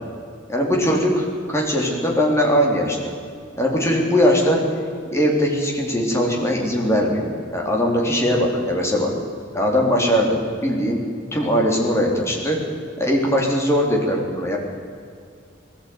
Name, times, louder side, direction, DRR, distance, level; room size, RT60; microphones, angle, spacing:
voice 1, 0.5-3.1 3.6-4.6 5.1-9.1 9.5-11.0 11.3-12.6 13.0-14.6, equal, 15° left, -1 dB, 3.9 m, -20 dB
20.0 x 14.5 x 9.6 m, 2.2 s
head